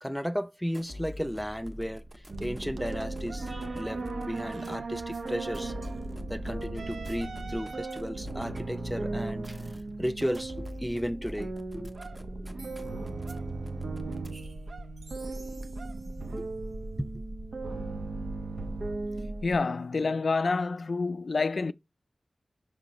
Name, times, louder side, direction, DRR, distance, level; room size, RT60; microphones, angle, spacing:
voice 1, 0.0-5.8 6.3-9.6 10.0-11.9 16.3-16.5 17.0-17.2, equal, 5° left, 0.4 m, -34 dB
sound 1, 0.7-14.7, equal, 20° right, 1.0 m, -46 dB
sound 2, 2.3-19.6, right 2 dB, 85° right, 0.8 m, -37 dB
voice 2, 19.4-21.7, left 4 dB, 70° left, 0.3 m, -28 dB
5.8 x 3.3 x 5.1 m
wide cardioid pair, 70°, 0 cm